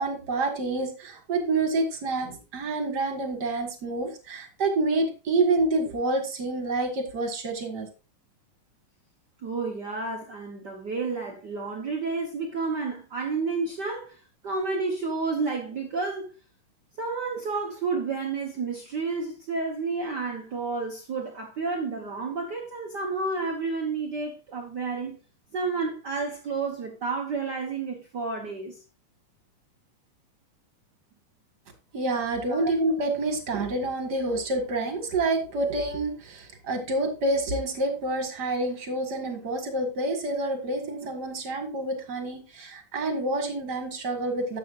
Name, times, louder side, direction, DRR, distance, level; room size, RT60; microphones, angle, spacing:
voice 1, 0.0-7.9 31.9-44.6, right 2 dB, 40° right, 1.8 m, -28 dB
voice 2, 9.4-16.3 17.0-25.2 25.5-28.8 32.5-32.7, right 4 dB, 75° right, 0.9 m, -31 dB
12.0 x 8.0 x 2.5 m
omnidirectional pair, 3.8 m